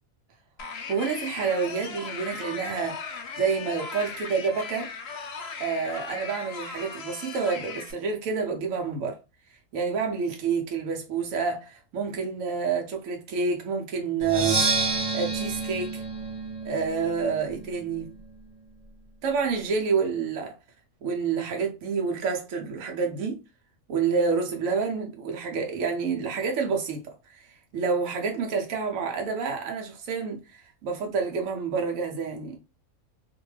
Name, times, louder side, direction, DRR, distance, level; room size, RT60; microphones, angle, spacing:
sound 1, 0.6-7.9, left 5 dB, 60° left, 0.7 m, -38 dB
voice 1, 0.9-4.9 5.6-9.2 9.7-14.6 15.1-16.0 16.6-18.2 19.2-20.5 21.0-23.4 23.9-27.5 27.7-32.6, right 5 dB, 75° right, 1.0 m, -28 dB
Percussion, 14.2-18.0, right 3 dB, 40° right, 0.7 m, -29 dB
2.6 x 2.2 x 3.0 m
omnidirectional pair, 1.4 m